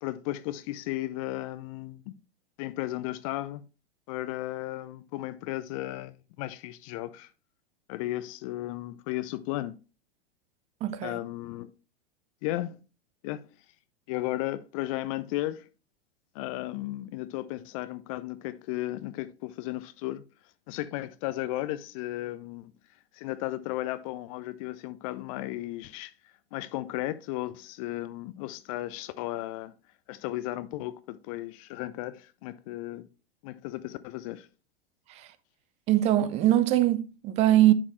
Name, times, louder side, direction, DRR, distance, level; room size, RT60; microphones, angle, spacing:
voice 1, 0.0-2.1 2.6-3.6 4.1-7.3 7.9-9.7 11.0-11.7 12.4-12.8 13.2-13.5 14.1-15.7 16.3-20.2 20.7-22.7 23.1-26.1 26.5-29.7 30.1-33.1 33.4-34.5, left 16 dB, 35° left, 0.5 m, -35 dB
voice 2, 10.8-11.1 35.1-35.3 35.9-37.7, right 13 dB, 20° right, 0.5 m, -22 dB
9.9 x 4.4 x 3.1 m
figure-of-eight pair, 100°, 31 cm